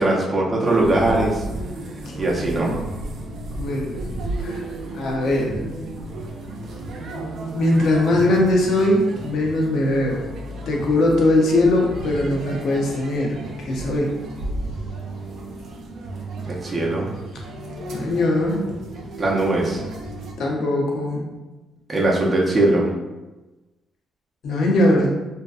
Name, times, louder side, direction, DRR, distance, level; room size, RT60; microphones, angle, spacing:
voice 1, 0.0-1.4 2.2-2.7 16.5-17.1 19.2-19.8 21.9-22.9, right 2 dB, 25° right, -3 dB, 0.6 m, -20 dB
sound 1, 0.6-20.3, right 1 dB, 70° right, 0.4 m, -33 dB
voice 2, 3.6-4.0 4.4-4.6 4.9-5.6 7.5-10.2 10.7-14.2 17.9-18.6 20.4-21.3 24.4-25.2, left 1 dB, 70° left, 0 dB, 0.6 m, -20 dB
2.6 x 2.2 x 2.3 m, 1.1 s
cardioid pair, 90°, 0 cm